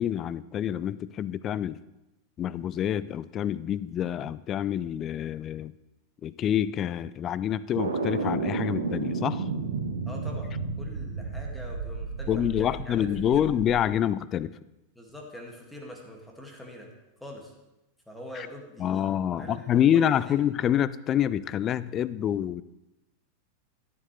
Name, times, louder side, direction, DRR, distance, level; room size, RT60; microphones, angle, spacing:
voice 1, 0.0-1.8 2.4-5.7 6.2-9.5 12.3-14.6 18.4-18.5 18.8-22.6, left 10 dB, 30° left, 17 dB, 0.4 m, -27 dB
sound 1, 7.7-13.8, right 4 dB, 70° right, 1.1 m, -32 dB
voice 2, 10.0-13.4 15.0-16.9 17.2-17.5 18.1-20.4, left 1 dB, 5° left, 0 dB, 2.1 m, -44 dB
14.0 x 9.2 x 3.3 m, 0.96 s
figure-of-eight pair, 90°, 0 cm